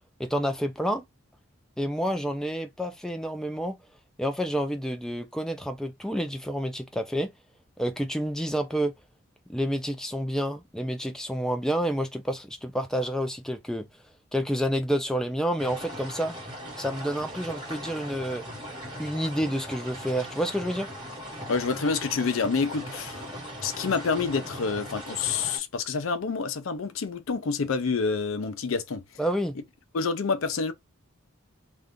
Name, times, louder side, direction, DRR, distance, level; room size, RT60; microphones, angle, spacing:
voice 1, 0.2-1.0 1.8-3.8 4.2-7.3 7.8-8.9 9.5-13.9 14.3-16.3 16.8-18.4 19.0-20.9 29.2-29.6, equal, 5° left, 0.3 m, -29 dB
sound 1, 15.6-25.6, equal, 20° right, 1.5 m, -39 dB
voice 2, 21.5-23.3 23.6-29.0 29.9-30.7, left 5 dB, 65° left, 0.5 m, -28 dB
2.5 x 2.4 x 3.5 m
head